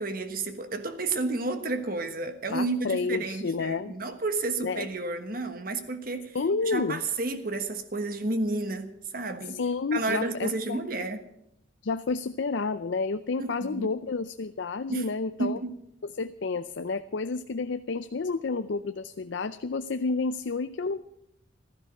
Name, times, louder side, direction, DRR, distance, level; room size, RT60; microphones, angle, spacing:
voice 1, 0.0-6.4 6.6-9.6 9.9-11.3 13.4-13.9 14.9-15.1 15.4-15.8, right 3 dB, 45° right, 8 dB, 1.3 m, -31 dB
voice 2, 2.5-3.9 4.6-4.9 6.3-7.0 9.5-10.8 11.8-15.6 16.0-21.0, left 4 dB, 65° left, 10 dB, 0.5 m, -30 dB
15.0 x 12.5 x 6.0 m, 0.76 s
head